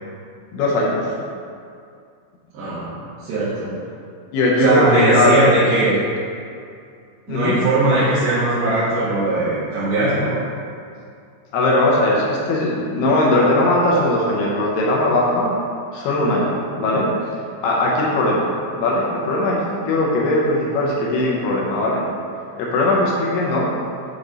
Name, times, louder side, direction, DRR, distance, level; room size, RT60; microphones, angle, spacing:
voice 1, 0.5-1.1 4.3-5.4 5.7-6.0 7.3-7.6 11.5-15.5 15.9-17.1 17.6-18.5 18.7-22.0 22.6-23.7, left 1 dB, 75° left, -4 dB, 2.4 m, -19 dB
voice 2, 2.5-3.0 3.2-3.7 4.6-6.0 7.3-10.4, right 2 dB, 65° right, -12 dB, 2.9 m, -19 dB
8.5 x 3.4 x 3.8 m, 2.4 s
omnidirectional pair, 5.3 m